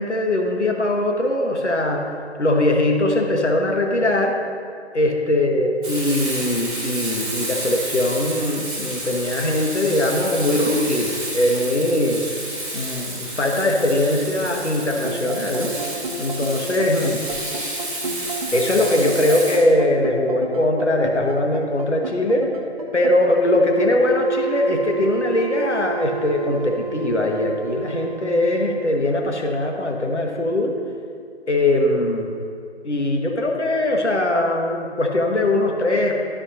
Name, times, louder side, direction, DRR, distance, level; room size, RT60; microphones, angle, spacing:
voice 1, 0.0-2.0 2.4-4.4 4.9-12.4 12.7-15.8 16.2-17.2 18.2-22.5 22.9-30.7 31.5-32.3 32.8-36.2, left 1 dB, 80° left, 2 dB, 1.2 m, -21 dB
Frying (food), 5.8-19.6, right 1 dB, 5° right, 1.1 m, -30 dB
sound 1, 14.9-28.9, right 4 dB, 35° right, 0.7 m, -31 dB
12.0 x 6.1 x 2.7 m, 2.3 s
figure-of-eight pair, 155°, 34 cm